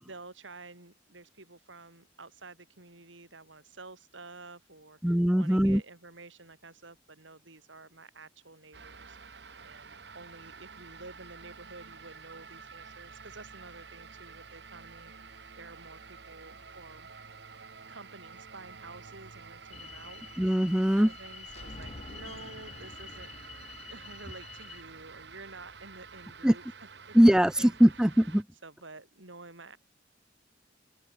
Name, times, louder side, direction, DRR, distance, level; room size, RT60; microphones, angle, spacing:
voice 1, 0.1-17.1 17.9-20.5 20.9-23.3 23.9-26.6 27.1-27.8 28.6-29.8, right 3 dB, 85° right, 4.4 m, -50 dB
voice 2, 5.0-5.8 20.4-21.1 26.4-26.5 27.1-28.4, equal, 5° right, 0.4 m, -21 dB
sound 1, 8.7-28.4, right 5 dB, 60° right, 1.4 m, -49 dB
sound 2, 19.7-24.8, left 5 dB, 35° left, 0.9 m, -47 dB
open air
head